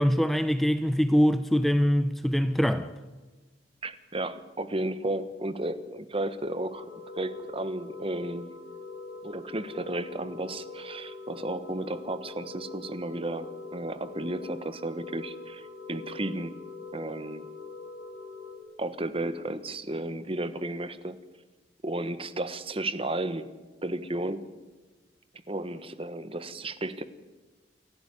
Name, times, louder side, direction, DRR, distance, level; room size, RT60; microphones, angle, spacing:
voice 1, 0.0-2.9, equal, ahead, 0.6 m, -23 dB
voice 2, 3.8-6.9 7.2-8.5 9.2-16.5 16.9-17.4 18.8-21.2 21.8-23.5 23.8-24.4 25.5-27.0, right 1 dB, 30° right, 1.3 m, -33 dB
sound 1, 6.7-18.6, left 3 dB, 75° left, 7.7 m, -43 dB
28.5 x 11.5 x 9.7 m
head